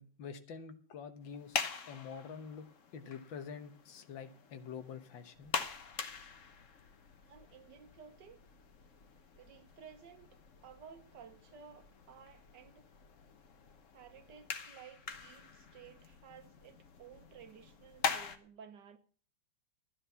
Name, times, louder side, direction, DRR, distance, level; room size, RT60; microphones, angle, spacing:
voice 1, 0.0-2.7 2.9-5.5, left 6 dB, 85° left, 1.9 m, -47 dB
sound 1, 1.2-18.4, left 6 dB, 50° left, 1.3 m, -44 dB
voice 2, 7.3-8.4 9.4-12.9 13.9-19.0, right 7 dB, 70° right, 1.7 m, -55 dB
12.5 x 9.8 x 5.6 m
omnidirectional pair, 2.0 m